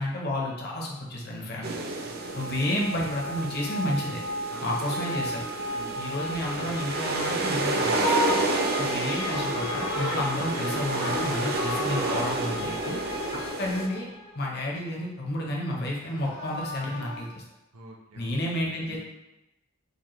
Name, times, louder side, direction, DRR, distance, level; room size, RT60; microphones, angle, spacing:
voice 1, 0.0-1.8 2.3-4.2 4.6-5.5 6.0-8.2 8.8-13.0 13.6-14.1 14.3-17.4 18.2-19.0, left 1 dB, 45° left, -2 dB, 0.8 m, -31 dB
sound 1, 1.6-13.9, right 3 dB, 45° right, 0.4 m, -31 dB
sound 2, 1.8-14.6, left 1 dB, 30° left, 0.4 m, -36 dB
voice 2, 2.0-2.5 4.5-4.7 5.7-6.0 17.7-18.3 18.7-19.0, right 1 dB, 85° right, -1 dB, 0.7 m, -47 dB
Livestock farm animals working animals, 7.2-10.6 10.9-12.2 16.0-17.2, left 1 dB, 80° left, 1.2 m, -33 dB
5.1 x 2.1 x 3.0 m, 0.95 s
head